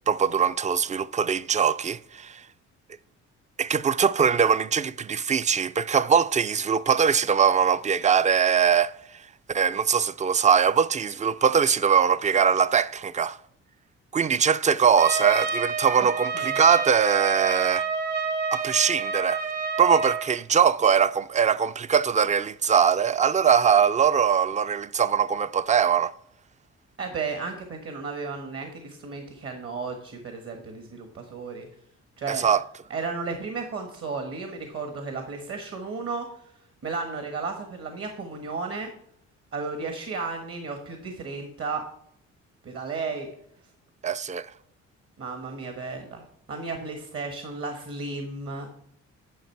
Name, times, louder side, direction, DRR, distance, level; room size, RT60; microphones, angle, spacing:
voice 1, 0.1-2.4 3.6-8.9 9.5-13.4 14.1-17.9 18.5-19.4 19.8-26.1 32.3-32.6 44.0-44.5, right 7 dB, 25° right, 0.4 m, -22 dB
Trumpet, 15.0-20.3, right 5 dB, 90° right, 1.2 m, -28 dB
voice 2, 27.0-31.7 32.2-32.5 32.9-36.3 36.8-38.9 39.5-41.8 42.6-43.3 45.2-48.7, right 4 dB, 50° right, 1.4 m, -34 dB
10.5 x 5.4 x 4.5 m
cardioid pair, 90°, 30 cm